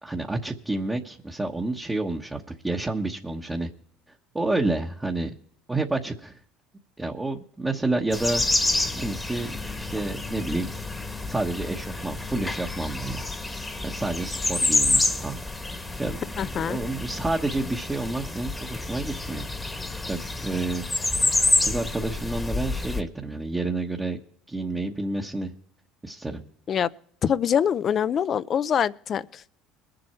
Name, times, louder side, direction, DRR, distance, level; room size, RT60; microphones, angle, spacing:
voice 1, 0.0-3.7 4.3-5.3 5.7-6.4 7.0-8.4 8.9-10.7 11.3-13.2 13.8-15.4 16.0-19.5 20.0-20.9 21.6-24.2 24.5-25.5 26.0-26.4, right 2 dB, 15° right, 1.2 m, -29 dB
sound 1, 8.1-23.0, left 2 dB, 15° left, 1.4 m, -28 dB
voice 2, 16.4-16.8 26.7-26.9 27.2-29.4, left 8 dB, 40° left, 0.5 m, -24 dB
21.0 x 7.7 x 4.4 m
supercardioid pair, 95°, 0 cm